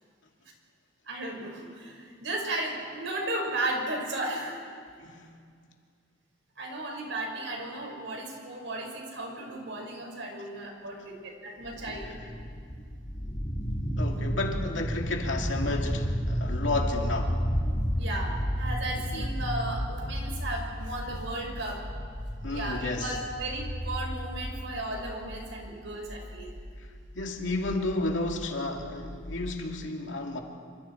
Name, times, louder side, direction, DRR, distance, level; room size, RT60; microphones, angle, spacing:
voice 1, 1.1-4.6 6.6-12.2 18.0-21.8 22.5-26.5, right 1 dB, 75° right, 0 dB, 5.3 m, -35 dB
voice 2, 5.0-5.3 11.9-12.3 14.0-17.4 19.1-19.3 22.4-23.2 27.1-30.4, left 2 dB, 85° left, 2 dB, 2.4 m, -32 dB
sound 1, 11.6-29.5, equal, 30° left, 3.3 m, -33 dB
26.5 x 25.5 x 4.5 m, 2.1 s
head